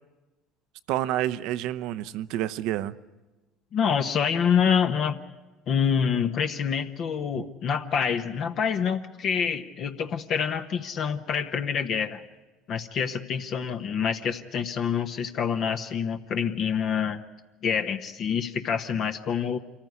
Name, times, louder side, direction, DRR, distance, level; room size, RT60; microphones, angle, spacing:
voice 1, 0.9-2.9, right 13 dB, 70° right, 0.7 m, -28 dB
voice 2, 3.7-5.2 5.7-12.2 12.7-17.2 17.6-19.6, left 7 dB, 55° left, 1.1 m, -26 dB
26.0 x 14.5 x 9.5 m
supercardioid pair, 80°, 0 cm